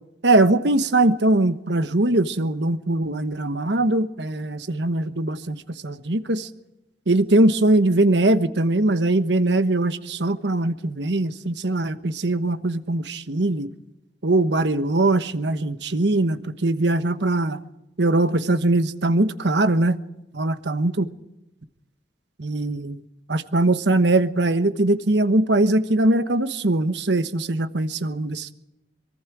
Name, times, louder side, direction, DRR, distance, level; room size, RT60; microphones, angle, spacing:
voice 1, 0.2-6.5 7.1-13.7 14.2-17.6 18.0-20.0 20.3-21.1 22.4-23.0 23.3-28.5, right 2 dB, 70° right, 11 dB, 1.2 m, -21 dB
24.0 x 23.0 x 4.8 m, 0.94 s
head